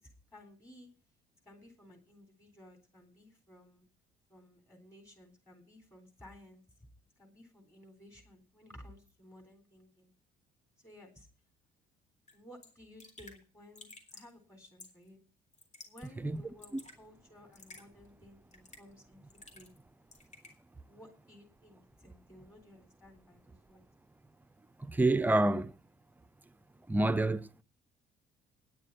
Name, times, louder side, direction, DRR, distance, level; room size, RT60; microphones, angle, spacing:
voice 1, 0.0-0.9 1.4-3.9 4.3-6.6 7.2-10.1 10.8-11.3 12.3-15.2 15.8-19.7 20.9-23.8, left 1 dB, 20° left, 3.5 m, -56 dB
Raindrop / Drip, 12.3-12.4 12.6-12.7 13.0-13.4 13.8-14.3 14.8-15.1 15.5-16.1 16.4-17.0 17.5-17.8 18.5-18.9 19.3-19.8 20.1-20.5, left 3 dB, 45° left, 3.8 m, -52 dB
voice 2, 24.8-25.7 26.9-27.6, right 2 dB, 10° right, 0.5 m, -27 dB
9.8 x 7.4 x 9.3 m
cardioid pair, 110°, 17 cm